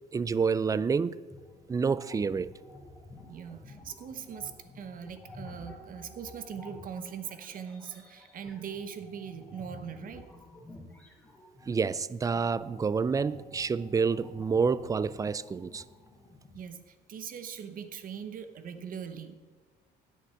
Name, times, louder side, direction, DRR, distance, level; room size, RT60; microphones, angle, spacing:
voice 1, 0.1-1.2 1.7-2.5 11.7-15.8, right 5 dB, 20° right, 0.4 m, -28 dB
sound 1, 1.3-11.8 12.3-16.6, left 2 dB, 10° left, 2.4 m, -51 dB
voice 2, 3.2-10.2 16.5-19.3, right 7 dB, 50° right, 1.0 m, -41 dB
9.8 x 8.7 x 7.0 m
cardioid pair, 115°, 18 cm